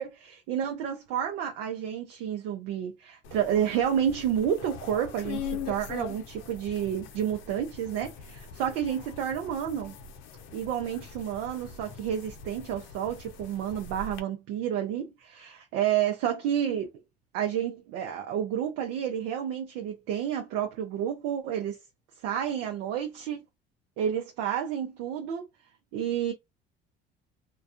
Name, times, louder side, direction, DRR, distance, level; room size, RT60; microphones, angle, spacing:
voice 1, 0.0-9.9 10.5-16.9 17.3-21.8 22.2-23.4 24.0-25.5 25.9-26.3, right 9 dB, 75° right, 0.6 m, -30 dB
sound 1, 3.2-14.2, left 6 dB, 70° left, 0.6 m, -42 dB
2.3 x 2.3 x 2.5 m
supercardioid pair, 80°, 21 cm